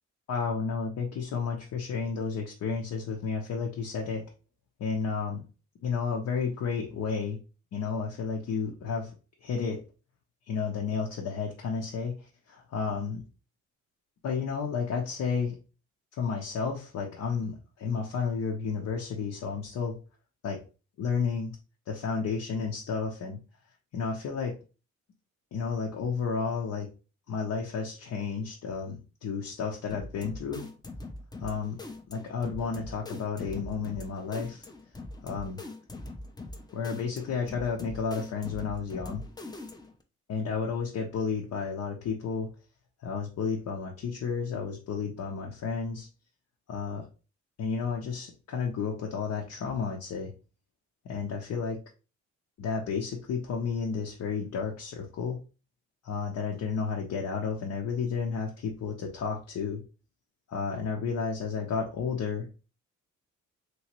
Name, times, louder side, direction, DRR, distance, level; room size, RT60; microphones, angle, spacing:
voice 1, 0.3-4.3 4.8-5.5 5.8-7.4 7.7-9.1 9.4-9.8 10.5-13.2 14.2-15.6 16.2-20.0 20.4-20.6 21.0-21.5 21.9-23.4 23.9-24.6 25.5-26.9 27.3-30.7 31.4-31.8 32.1-34.7 35.2-35.6 36.7-39.3 40.3-42.5 43.0-46.1 46.7-47.0 47.6-50.3 51.0-51.8 52.6-55.4 56.0-59.8 60.5-62.5, left 5 dB, 65° left, -1 dB, 0.8 m, -32 dB
sound 1, 29.9-40.0, left 2 dB, 15° left, 0.6 m, -43 dB
3.1 x 3.0 x 3.0 m, 0.33 s
cardioid pair, 90°, 30 cm